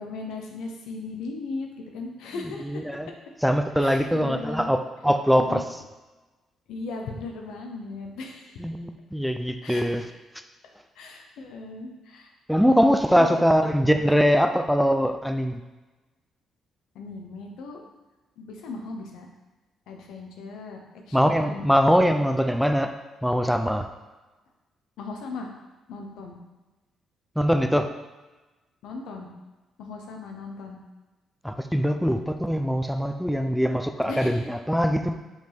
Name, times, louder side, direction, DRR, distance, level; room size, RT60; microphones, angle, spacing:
voice 1, 0.0-1.7 1.9-2.7 3.8-4.7 5.4-5.6 6.7-8.6 9.6-10.0 11.0-12.3 13.2-13.7 16.9-17.8 18.4-19.3 19.9-21.6 25.0-25.5 25.9-26.4 28.8-29.3 29.8-30.8 34.1-34.4, left 3 dB, 85° left, 2 dB, 1.0 m, -37 dB
voice 2, 2.7-3.1 3.4-5.6 8.6-10.0 12.5-15.6 21.1-22.9 23.2-23.9 27.4-27.9 31.4-35.2, equal, ahead, 7 dB, 0.4 m, -22 dB
5.9 x 5.2 x 3.5 m, 1.2 s
cardioid pair, 90°, 0 cm